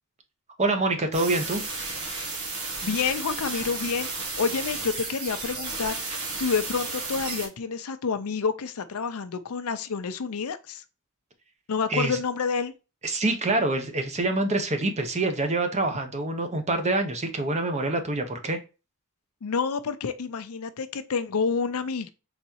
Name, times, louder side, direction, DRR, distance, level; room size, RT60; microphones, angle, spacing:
voice 1, 0.6-1.6 11.9-12.2 13.0-18.6, right 2 dB, 30° right, 0.9 m, -26 dB
sound 1, 1.1-7.5, right 3 dB, 85° right, 1.5 m, -33 dB
voice 2, 2.8-6.1 6.4-10.8 11.7-12.7 19.4-22.1, left 5 dB, 85° left, 0.6 m, -28 dB
4.1 x 3.6 x 2.8 m
head